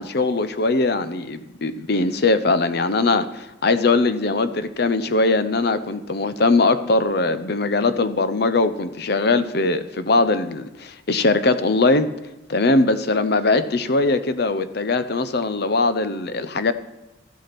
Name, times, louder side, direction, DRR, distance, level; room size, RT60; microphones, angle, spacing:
voice 1, 0.0-12.1 12.5-16.7, left 3 dB, 60° left, 12 dB, 0.8 m, -21 dB
13.5 x 8.3 x 6.0 m, 0.97 s
head